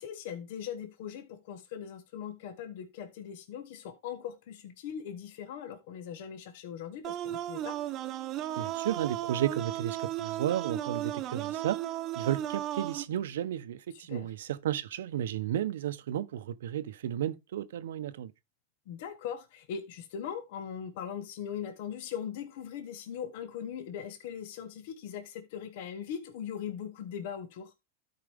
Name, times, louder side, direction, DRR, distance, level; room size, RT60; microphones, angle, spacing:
voice 1, 0.0-7.8 13.9-14.3 18.9-27.7, left 8 dB, 65° left, 1.1 m, -40 dB
sound 1, 7.0-13.0, right 13 dB, 35° right, 0.8 m, -35 dB
voice 2, 8.6-11.8 12.2-18.3, right 11 dB, 85° right, 0.7 m, -33 dB
12.5 x 4.8 x 3.4 m
supercardioid pair, 135°, 0 cm